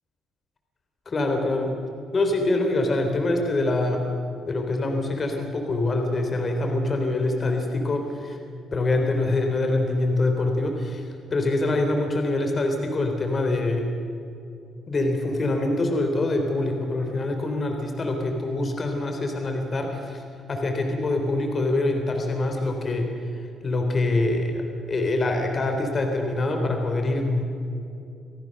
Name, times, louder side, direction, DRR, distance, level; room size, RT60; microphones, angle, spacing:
voice 1, 1.1-1.7 2.1-4.1 4.5-8.4 8.7-13.9 14.9-20.2 20.5-27.4, left 2 dB, 40° left, 4 dB, 3.7 m, -25 dB
26.5 x 16.5 x 6.7 m, 2.6 s
cardioid pair, 90°, 0 cm